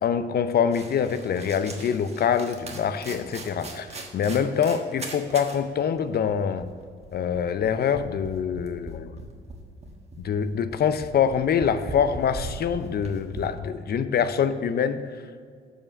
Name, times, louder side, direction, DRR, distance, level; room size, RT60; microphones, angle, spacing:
voice 1, 0.0-6.7 7.1-9.1 10.2-15.0, left 7 dB, 50° left, 12 dB, 0.6 m, -25 dB
sound 1, 0.7-5.6 5.9-6.0 6.3-13.4, right 2 dB, 30° right, 1.3 m, -40 dB
7.5 x 5.1 x 6.4 m, 2.1 s
cardioid pair, 90°, 20 cm